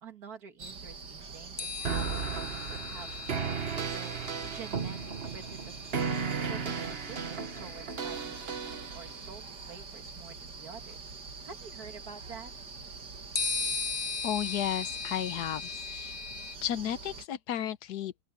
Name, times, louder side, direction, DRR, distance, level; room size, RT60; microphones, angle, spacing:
voice 1, 0.0-3.1 3.4-4.2 4.4-5.8 6.5-11.1 11.4-12.5, right 6 dB, 60° right, 2.4 m, -48 dB
sound 1, 0.6-17.3, right 4 dB, 80° right, 3.1 m, -45 dB
sound 2, 1.6-7.2 8.5-8.6 13.3-16.6, left 4 dB, 45° left, 0.6 m, -38 dB
sound 3, 1.9-9.2, right 6 dB, 40° right, 1.3 m, -35 dB
voice 2, 14.2-16.2 16.6-18.2, left 11 dB, 70° left, 1.3 m, -33 dB
open air
omnidirectional pair, 1.8 m